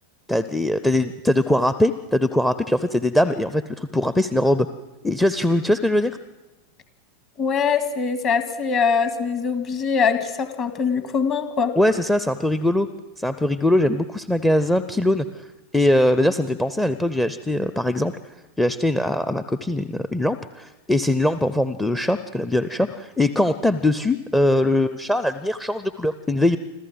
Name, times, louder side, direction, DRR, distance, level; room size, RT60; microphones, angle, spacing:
voice 1, 0.3-4.7 5.0-6.2 11.8-12.9 13.2-15.5 15.7-18.1 18.6-26.6, left 1 dB, 5° left, 13 dB, 0.7 m, -21 dB
voice 2, 7.4-11.7, left 6 dB, 35° left, 9 dB, 2.0 m, -22 dB
26.0 x 14.5 x 7.8 m, 1.1 s
figure-of-eight pair, 90°, 0 cm